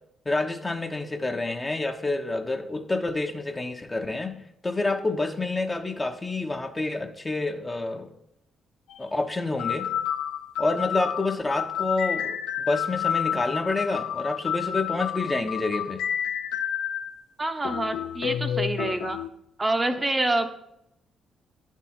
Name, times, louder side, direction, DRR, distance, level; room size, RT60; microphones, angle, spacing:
voice 1, 0.3-4.3 4.6-8.1 9.0-9.9 10.6-16.0, left 2 dB, 25° left, 5 dB, 0.8 m, -28 dB
sound 1, 8.9-9.0 9.6-17.1 17.6-19.3, left 9 dB, 85° left, 0.3 m, -30 dB
voice 2, 17.4-19.2 19.6-20.5, right 2 dB, 25° right, 7 dB, 0.6 m, -26 dB
9.6 x 3.6 x 4.2 m, 0.79 s
supercardioid pair, 55°, 0 cm